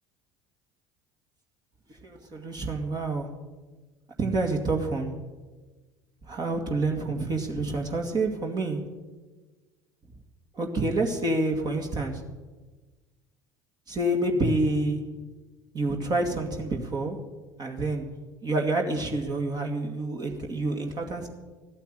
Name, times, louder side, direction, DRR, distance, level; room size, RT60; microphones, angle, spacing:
voice 1, 2.0-3.3 4.2-5.1 6.3-8.8 10.5-12.2 13.9-15.0 15.7-17.2 17.6-18.1 18.4-21.3, right 2 dB, 40° right, 2 dB, 2.1 m, -28 dB
14.0 x 8.9 x 9.2 m, 1.3 s
hypercardioid pair, 70°, 11 cm